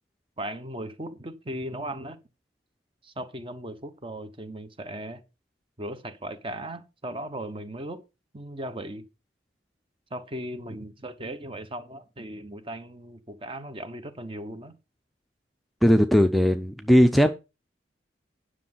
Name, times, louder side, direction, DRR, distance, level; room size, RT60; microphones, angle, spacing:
voice 1, 0.4-2.2 3.0-5.2 5.8-8.0 8.3-9.1 10.1-14.8, right 1 dB, 30° right, 1.1 m, -37 dB
voice 2, 15.8-17.3, equal, ahead, 0.6 m, -18 dB
10.0 x 6.3 x 5.6 m
head